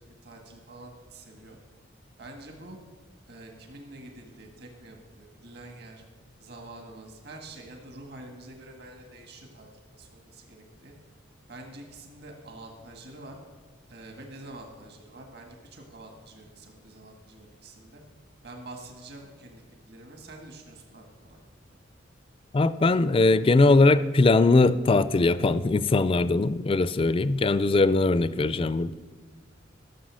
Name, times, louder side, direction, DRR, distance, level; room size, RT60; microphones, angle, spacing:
voice 1, 0.0-1.6 2.2-2.8 3.3-6.0 6.4-10.9 11.5-13.4 13.9-18.0 18.4-21.4 21.7-21.8, right 2 dB, 55° right, 3 dB, 1.7 m, -46 dB
voice 2, 22.5-28.9, left 3 dB, 30° left, 16 dB, 0.4 m, -21 dB
14.0 x 6.8 x 6.2 m, 1.4 s
head